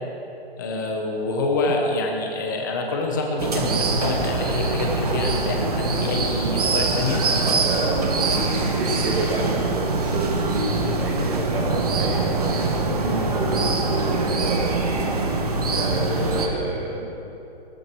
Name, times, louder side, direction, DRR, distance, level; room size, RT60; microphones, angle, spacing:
voice 1, 0.6-7.3 13.0-13.4, left 2 dB, 20° left, 1 dB, 1.2 m, -26 dB
sound 1, 3.4-16.5, right 3 dB, 35° right, 1.4 m, -23 dB
voice 2, 7.6-14.7 15.6-17.2, right 1 dB, 60° right, -2 dB, 2.5 m, -29 dB
19.0 x 14.0 x 4.7 m, 2.9 s
hypercardioid pair, 180°, 33 cm